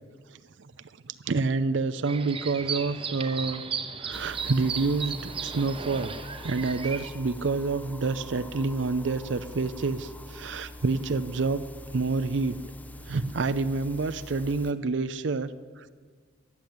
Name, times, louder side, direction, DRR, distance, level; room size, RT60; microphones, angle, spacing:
voice 1, 0.3-0.7 1.0-3.6 4.0-6.1 6.4-11.6 11.9-12.5 13.1-15.9, right 3 dB, 70° right, 13 dB, 0.5 m, -28 dB
sound 1, 2.0-7.1, right 6 dB, 25° right, 0.8 m, -35 dB
sound 2, 4.1-14.7, left 1 dB, 10° left, 0.5 m, -44 dB
14.0 x 10.0 x 8.6 m, 1.5 s
head